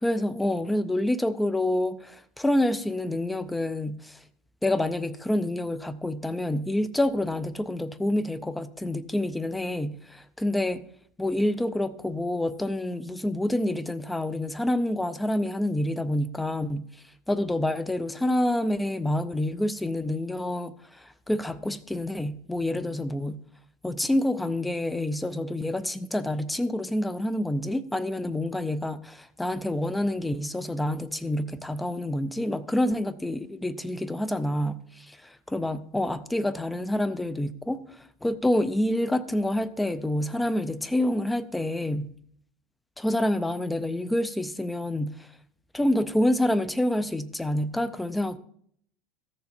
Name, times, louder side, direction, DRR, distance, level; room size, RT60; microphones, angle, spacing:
voice 1, 0.0-4.2 4.6-10.9 11.2-16.8 17.3-23.4 23.8-42.1 43.0-45.3 45.7-48.4, left 1 dB, 5° left, 0.4 m, -27 dB
14.0 x 6.9 x 4.3 m
supercardioid pair, 155°, 0 cm